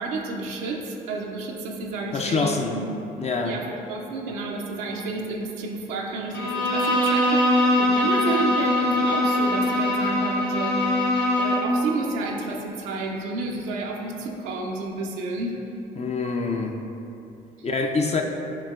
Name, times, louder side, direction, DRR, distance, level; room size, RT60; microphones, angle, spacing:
voice 1, 0.0-2.9 3.4-10.8 11.4-15.6 17.6-17.7, right 3 dB, 85° right, 0 dB, 0.5 m, -31 dB
voice 2, 2.1-2.7 3.2-3.6 16.0-16.8 17.6-18.2, left 4 dB, 35° left, 3 dB, 0.4 m, -25 dB
Bowed string instrument, 6.3-11.8, left 1 dB, 70° left, 0.8 m, -22 dB
6.8 x 2.8 x 2.4 m, 2.8 s
hypercardioid pair, 50°, 20 cm